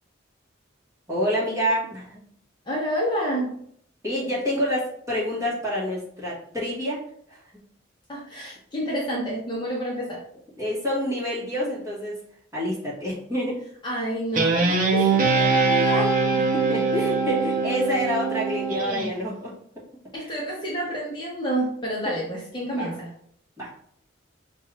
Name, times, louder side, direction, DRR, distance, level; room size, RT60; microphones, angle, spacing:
voice 1, 1.1-2.2 4.0-7.0 7.3-7.4 10.6-12.2 12.5-13.6 16.5-19.8 22.0-22.1 22.7-23.0 23.6-23.7, equal, 15° right, -7 dB, 1.6 m, -27 dB
voice 2, 2.6-3.5 8.1-10.2 13.8-16.1 20.1-23.1, equal, 25° left, -4 dB, 0.9 m, -29 dB
Guitar, 14.3-19.1, right 4 dB, 40° right, 0.6 m, -22 dB
5.3 x 2.6 x 3.3 m, 0.65 s
head